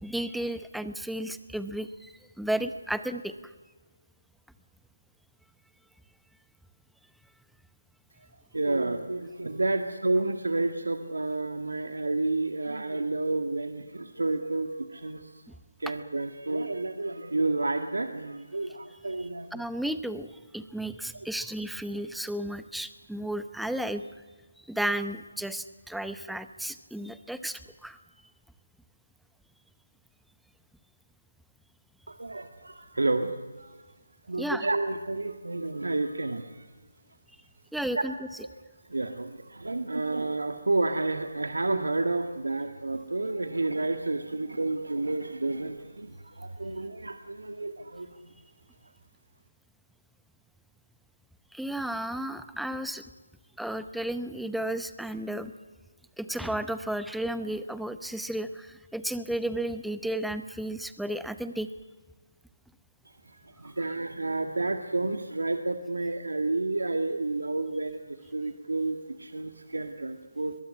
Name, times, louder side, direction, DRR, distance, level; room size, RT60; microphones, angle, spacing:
voice 1, 0.0-3.5 19.5-24.0 24.6-28.0 34.4-34.7 37.7-38.1 51.5-53.0 53.6-55.5 56.2-61.7, right 1 dB, ahead, 12 dB, 0.8 m, -33 dB
voice 2, 8.5-15.4 15.8-19.7 21.1-21.3 32.1-33.3 33.6-33.8 34.3-36.7 38.9-48.3 63.2-70.6, right 2 dB, 70° right, 7 dB, 1.8 m, -30 dB
22.0 x 22.0 x 9.5 m, 1.3 s
figure-of-eight pair, 150°, 0 cm